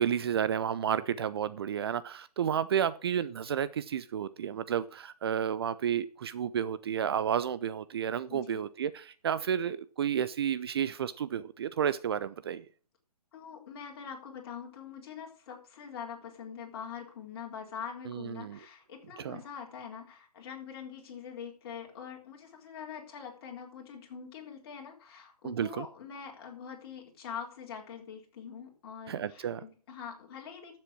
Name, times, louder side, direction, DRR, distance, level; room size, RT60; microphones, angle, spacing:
voice 1, 0.0-12.7 18.1-18.6 19.2-19.4 25.4-25.9 29.1-29.6, right 8 dB, 40° right, 15 dB, 0.6 m, -31 dB
voice 2, 8.3-8.6 13.3-30.8, left 7 dB, 40° left, 1 dB, 3.8 m, -44 dB
12.5 x 7.6 x 6.1 m, 0.39 s
figure-of-eight pair, 140°, 20 cm